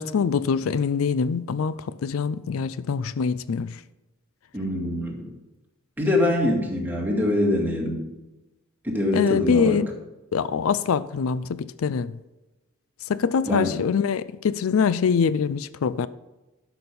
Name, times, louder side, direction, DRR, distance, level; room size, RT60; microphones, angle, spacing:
voice 1, 0.0-3.8 9.1-9.9 10.3-12.2 13.1-16.1, left 6 dB, 80° left, 0.4 m, -24 dB
voice 2, 4.5-5.3 6.0-8.0 8.8-9.8 13.5-13.8, left 1 dB, 10° right, 2.1 m, -24 dB
11.0 x 6.1 x 5.4 m
head